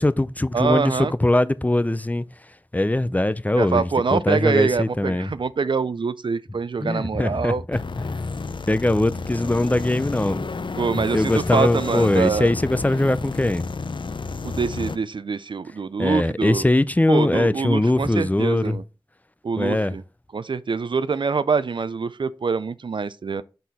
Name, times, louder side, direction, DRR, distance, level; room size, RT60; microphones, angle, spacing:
voice 1, 0.0-2.3 2.7-5.3 6.8-8.2 8.7-10.9 11.1-13.7 16.0-18.8 19.6-19.9, left 1 dB, 20° left, 0.4 m, -21 dB
voice 2, 0.5-1.1 3.6-7.6 10.8-12.5 14.4-16.6 17.1-18.8 19.4-20.0 20.3-23.4, right 5 dB, 75° right, 0.3 m, -24 dB
sound 1, 7.7-15.0, left 4 dB, 70° left, 0.5 m, -31 dB
6.5 x 4.0 x 4.0 m
wide cardioid pair, 45°, 8 cm